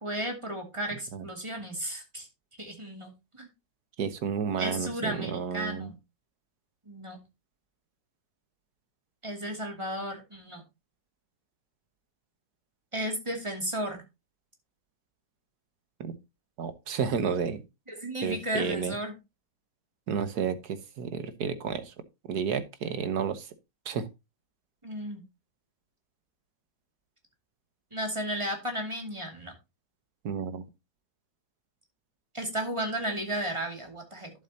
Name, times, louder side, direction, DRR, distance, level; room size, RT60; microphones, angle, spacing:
voice 1, 0.0-2.3 2.6-3.5 4.6-6.0 6.9-7.2 9.2-10.6 12.9-14.0 17.9-19.2 24.8-25.2 27.9-29.5 32.3-34.3, right 1 dB, 15° right, 3 dB, 2.3 m, -34 dB
voice 2, 4.0-5.9 16.0-16.1 16.6-17.6 18.2-18.9 20.1-21.9 22.3-23.4 23.9-24.1 30.2-30.6, right 6 dB, 70° right, 12 dB, 1.5 m, -31 dB
11.5 x 7.5 x 2.8 m, 0.24 s
omnidirectional pair, 1.8 m